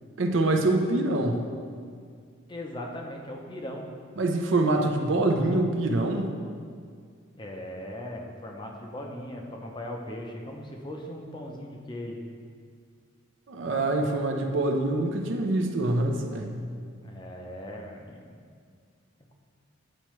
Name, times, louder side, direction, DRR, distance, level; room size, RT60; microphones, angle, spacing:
voice 1, 0.2-1.5 4.2-6.3 13.5-16.6, right 2 dB, 60° right, 3 dB, 0.6 m, -25 dB
voice 2, 2.5-3.9 7.4-12.3 17.0-18.4, left 1 dB, 20° left, 1 dB, 0.5 m, -39 dB
8.8 x 4.5 x 3.1 m, 2.1 s
head